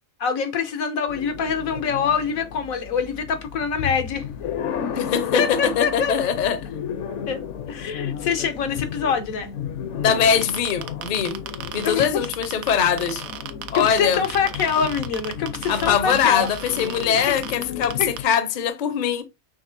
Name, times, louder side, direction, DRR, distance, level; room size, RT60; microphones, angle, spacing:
voice 1, 0.2-4.2 4.9-6.3 7.3-9.5 11.8-12.1 13.7-16.5 17.3-17.4 18.0-18.1, left 6 dB, 85° left, 1.3 m, -25 dB
sound 1, 1.1-18.2, left 8 dB, 65° left, 0.9 m, -33 dB
voice 2, 5.0-6.6 9.9-11.4 11.7-13.2 13.7-14.2 15.7-19.2, left 8 dB, 45° left, 0.6 m, -22 dB
sound 2, 10.4-18.4, right 10 dB, 85° right, 1.1 m, -34 dB
5.2 x 3.1 x 2.6 m
omnidirectional pair, 1.4 m